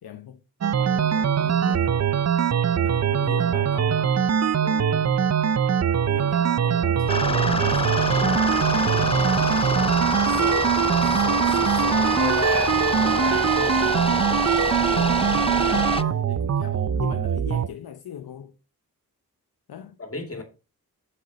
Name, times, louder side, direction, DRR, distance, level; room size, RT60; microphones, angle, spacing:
voice 1, 0.0-0.4 0.8-2.1 2.8-5.2 6.0-9.9 10.2-12.4 14.8-18.5 19.7-20.0 20.4-20.5, left 9 dB, 75° left, 0.8 m, -39 dB
sound 1, 0.6-17.7, right 8 dB, 45° right, 0.5 m, -22 dB
sound 2, 7.1-16.0, left 4 dB, 15° left, 0.3 m, -27 dB
voice 2, 12.2-13.8 20.0-20.4, left 2 dB, 40° left, 2.8 m, -32 dB
7.6 x 6.6 x 4.2 m
cardioid pair, 55°, 37 cm